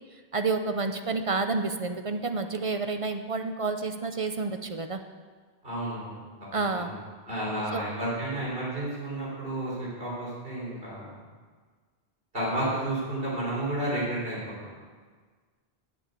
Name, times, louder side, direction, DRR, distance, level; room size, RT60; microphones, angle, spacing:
voice 1, 0.3-5.0 6.5-6.9 7.7-7.8, right 3 dB, 40° right, 7 dB, 0.6 m, -29 dB
voice 2, 5.6-6.2 6.7-7.0 7.2-11.1 12.3-14.4, right 1 dB, 60° right, -7 dB, 4.6 m, -31 dB
9.0 x 7.2 x 8.1 m, 1.5 s
omnidirectional pair, 1.0 m